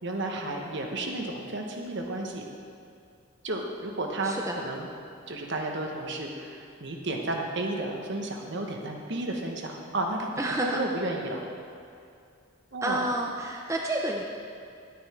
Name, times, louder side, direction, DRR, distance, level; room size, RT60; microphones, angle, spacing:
voice 1, 0.0-2.4 3.4-4.9 5.3-11.4 12.7-13.0, right 2 dB, 55° right, 2 dB, 1.2 m, -32 dB
voice 2, 4.2-4.6 10.4-10.8 12.8-14.2, right 1 dB, 15° right, 0 dB, 0.5 m, -29 dB
10.5 x 9.5 x 4.4 m, 2.4 s
head